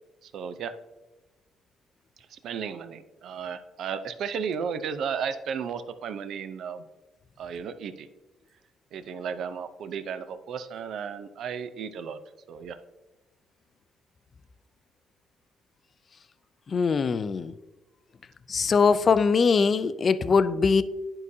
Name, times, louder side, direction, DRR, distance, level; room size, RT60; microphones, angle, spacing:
voice 1, 0.2-0.7 2.3-6.9 7.4-8.1 8.9-12.2 12.5-12.8, right 7 dB, 65° right, 11 dB, 0.5 m, -34 dB
voice 2, 16.7-17.5 18.5-20.8, left 5 dB, 35° left, 14 dB, 0.3 m, -22 dB
10.5 x 4.8 x 2.7 m, 1.1 s
cardioid pair, 125°, 0 cm